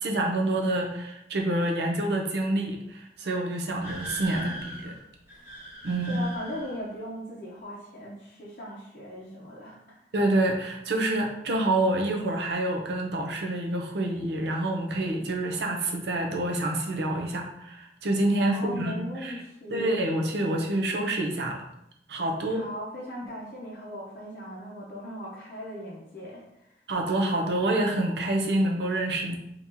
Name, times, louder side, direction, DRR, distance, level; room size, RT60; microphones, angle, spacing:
voice 1, 0.0-4.9 5.8-6.2 10.1-19.4 19.7-21.7 22.1-22.7 26.9-29.3, right 1 dB, 70° right, 1 dB, 0.6 m, -27 dB
sound 1, 3.8-7.0, right 1 dB, 15° right, 1.0 m, -40 dB
voice 2, 4.3-4.7 6.1-10.0 18.4-20.0 22.5-26.4, equal, 50° left, -6 dB, 0.7 m, -39 dB
2.9 x 2.7 x 3.6 m, 0.80 s
head